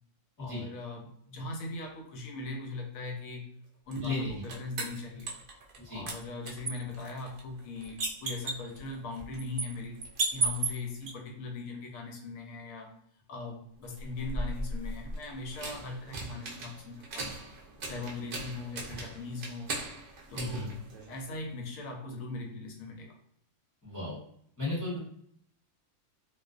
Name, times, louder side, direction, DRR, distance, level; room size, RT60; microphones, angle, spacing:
voice 1, 0.4-3.5 3.9-5.3 5.9-10.0 10.3-13.0 13.3-17.3 17.8-19.7 20.3-20.8 21.1-23.2, left 3 dB, 90° left, 2 dB, 1.0 m, -40 dB
sound 1, 3.9-5.8 6.1-11.1 13.9-21.4, right 3 dB, 60° right, 0.5 m, -37 dB
voice 2, 4.0-4.4 5.8-6.0 20.3-20.7 23.8-24.2 24.6-25.0, left 2 dB, 20° left, -6 dB, 0.5 m, -34 dB
2.4 x 2.1 x 2.3 m, 0.68 s
omnidirectional pair, 1.4 m